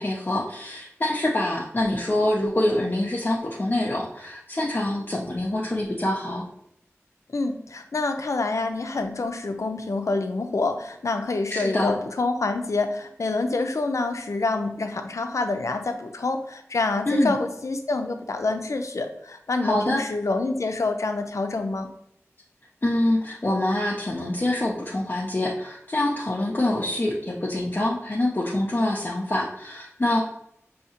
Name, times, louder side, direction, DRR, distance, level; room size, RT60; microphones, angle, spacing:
voice 1, 0.0-6.4 11.5-12.0 17.1-17.4 19.6-20.0 22.8-30.2, left 1 dB, 40° left, -4 dB, 0.6 m, -25 dB
voice 2, 7.3-21.9, left 3 dB, 80° left, 6 dB, 0.5 m, -27 dB
5.5 x 2.8 x 2.9 m, 0.74 s
wide cardioid pair, 55°, 5 cm